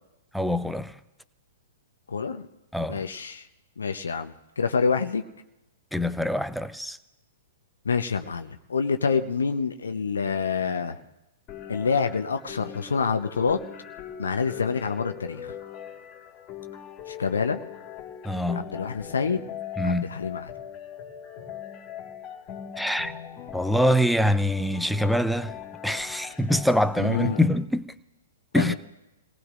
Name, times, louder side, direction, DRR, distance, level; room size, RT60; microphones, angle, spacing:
voice 1, 0.3-0.9 2.7-3.0 5.9-7.0 18.2-18.7 19.8-20.1 22.8-23.2 23.5-25.5 25.8-27.9 28.5-28.7, equal, ahead, 0.6 m, -24 dB
voice 2, 2.1-2.5 2.9-3.5 3.8-5.2 7.8-11.0 11.7-13.6 14.2-15.5 17.1-17.6 18.6-19.4 19.8-20.5 27.0-27.4 28.5-28.7, left 5 dB, 70° left, 0.9 m, -27 dB
sound 1, 11.5-27.5, left 9 dB, 25° left, 2.0 m, -40 dB
29.0 x 18.5 x 2.6 m
figure-of-eight pair, 115°, 0 cm